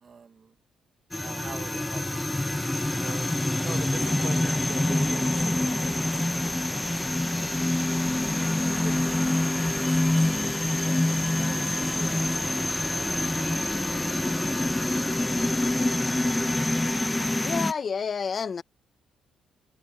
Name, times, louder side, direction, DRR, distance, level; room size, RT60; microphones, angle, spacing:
voice 1, 0.0-0.5 1.2-2.4 2.9-3.3 3.6-7.6 8.4-10.5 10.8-13.4 13.9-14.6, right 6 dB, 45° right, 1.2 m, -45 dB
sound 1, 1.1-17.7, left 1 dB, 10° left, 1.0 m, -26 dB
voice 2, 17.4-18.6, left 6 dB, 45° left, 0.9 m, -29 dB
cardioid pair, 90°, 0 cm